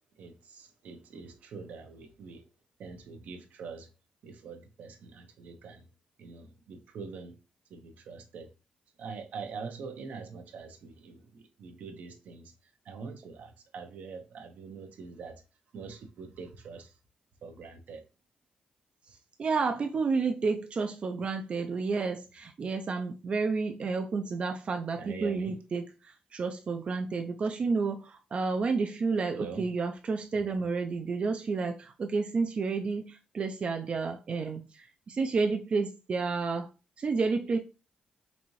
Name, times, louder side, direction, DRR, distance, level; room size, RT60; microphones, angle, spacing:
voice 1, 0.2-2.4 2.8-3.9 4.2-5.9 6.2-7.3 7.7-8.5 9.0-12.5 12.9-15.4 15.7-16.9 17.4-18.0 25.0-25.5 29.3-29.7, right 5 dB, 75° right, 0.7 m, -44 dB
voice 2, 19.4-36.7 37.0-37.6, right 4 dB, 45° right, 0.4 m, -30 dB
4.1 x 2.6 x 3.0 m
cardioid pair, 95°, 3 cm